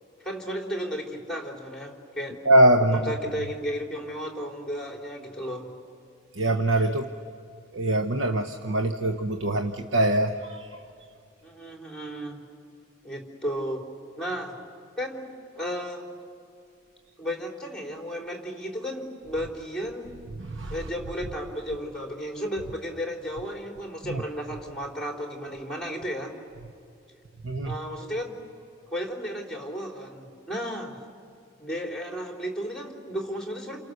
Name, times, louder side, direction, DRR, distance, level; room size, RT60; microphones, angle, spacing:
voice 1, 0.2-2.4 2.8-5.7 11.4-12.4 13.0-13.8 14.2-14.5 15.0-16.1 17.2-20.2 20.7-26.3 27.6-28.4 28.9-31.0 31.6-33.8, equal, 5° left, 1 dB, 3.6 m, -34 dB
voice 2, 2.5-3.3 6.4-7.1 7.7-10.7 20.4-20.7 24.1-24.2 27.4-27.7, right 1 dB, 80° right, 6 dB, 1.0 m, -23 dB
29.5 x 28.5 x 6.6 m, 2.4 s
head